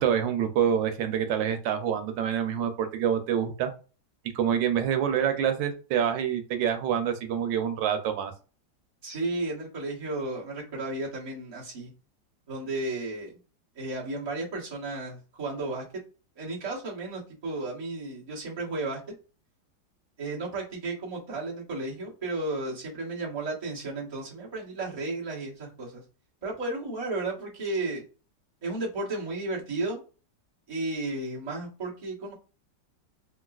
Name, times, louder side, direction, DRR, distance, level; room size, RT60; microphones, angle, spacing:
voice 1, 0.0-3.7 4.3-8.3, right 8 dB, 90° right, 6 dB, 1.3 m, -26 dB
voice 2, 9.0-11.9 12.5-13.3 13.7-15.8 16.4-19.0 20.2-26.0 26.4-28.0 28.6-30.0 30.7-32.3, right 2 dB, 25° right, -5 dB, 1.1 m, -33 dB
3.9 x 2.3 x 2.3 m, 0.35 s
omnidirectional pair, 1.9 m